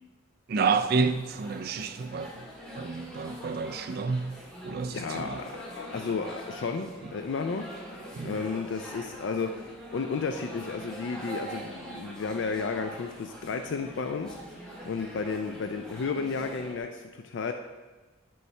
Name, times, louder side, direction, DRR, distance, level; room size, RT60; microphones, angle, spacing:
voice 1, 0.5-2.3 2.7-4.4 4.6-5.4 8.1-8.4, right 4 dB, 45° right, 0.3 m, -29 dB
sound 1, 0.7-16.8, right 1 dB, 5° left, 1.0 m, -44 dB
voice 2, 4.9-7.7 8.2-14.4 14.9-17.5, left 5 dB, 60° left, 0.3 m, -33 dB
8.8 x 5.4 x 3.2 m
head